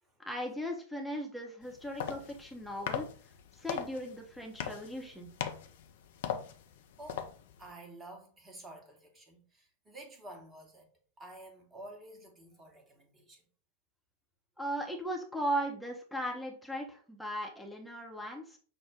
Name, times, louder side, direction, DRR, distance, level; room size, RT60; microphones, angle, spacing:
voice 1, 0.2-3.1 3.5-5.3 14.6-18.6, equal, ahead, 0.8 m, -37 dB
sound 1, 1.6-7.7, left 8 dB, 55° left, 0.5 m, -40 dB
voice 2, 7.0-10.9 11.2-13.4, right 1 dB, 20° right, 1.1 m, -51 dB
6.0 x 2.1 x 3.6 m
figure-of-eight pair, 90°, 0 cm